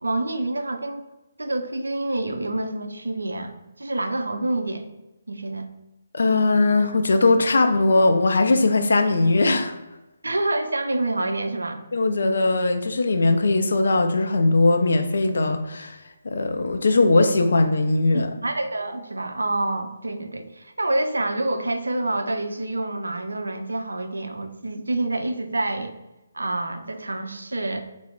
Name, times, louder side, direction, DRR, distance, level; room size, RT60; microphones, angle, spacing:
voice 1, 0.0-1.1 1.4-4.9 5.3-5.7 10.2-11.8 18.1-26.0 26.3-27.8, right 2 dB, 70° right, 6 dB, 0.4 m, -27 dB
voice 2, 6.1-9.7 11.9-16.0 16.2-18.3, left 2 dB, 60° left, 6 dB, 0.4 m, -20 dB
4.2 x 2.0 x 3.8 m, 1.0 s
figure-of-eight pair, 140°, 0 cm